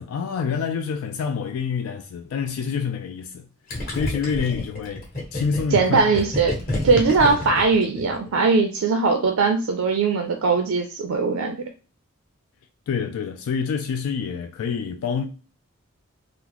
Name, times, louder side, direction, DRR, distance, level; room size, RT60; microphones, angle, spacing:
voice 1, 0.0-3.5 3.9-5.0 5.3-6.1 7.2-7.5 12.9-15.3, left 6 dB, 85° left, 0.3 m, -27 dB
Gurgling, 3.7-8.4, left 1 dB, 45° left, 1.3 m, -29 dB
voice 2, 5.7-6.6 6.8-11.6, right 4 dB, 80° right, 0.4 m, -20 dB
3.7 x 2.0 x 2.9 m
head